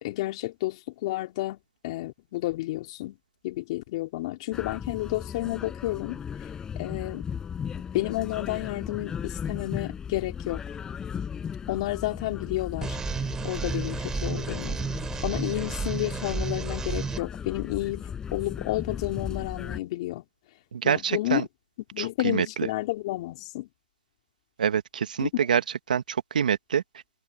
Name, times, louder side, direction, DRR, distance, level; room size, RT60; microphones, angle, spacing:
voice 1, 0.0-1.6 1.8-3.2 3.4-6.2 6.8-7.3 7.9-10.6 11.7-14.8 15.2-20.2 20.8-21.5 21.9-23.7 25.2-25.3, left 17 dB, 45° left, 3.7 m, -31 dB
sound 1, 4.5-19.8, left 7 dB, 15° left, 6.7 m, -36 dB
sound 2, 12.8-17.2, right 6 dB, 10° right, 3.7 m, -32 dB
voice 2, 20.7-21.4 22.0-22.7 24.6-25.6 25.9-26.8, right 8 dB, 75° right, 2.0 m, -26 dB
hypercardioid pair, 135°, 5 cm